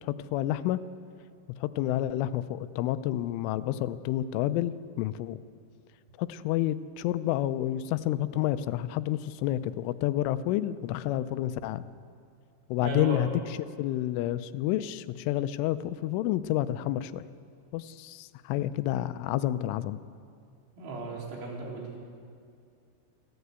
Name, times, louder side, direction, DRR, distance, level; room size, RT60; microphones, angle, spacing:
voice 1, 0.0-0.8 1.6-5.4 6.2-11.8 12.7-13.3 13.8-17.2 17.7-20.0, left 13 dB, 85° left, 13 dB, 3.1 m, -29 dB
voice 2, 12.8-13.2 20.8-21.9, right 2 dB, 75° right, -1 dB, 6.0 m, -35 dB
24.5 x 15.0 x 8.2 m, 2.3 s
omnidirectional pair, 5.6 m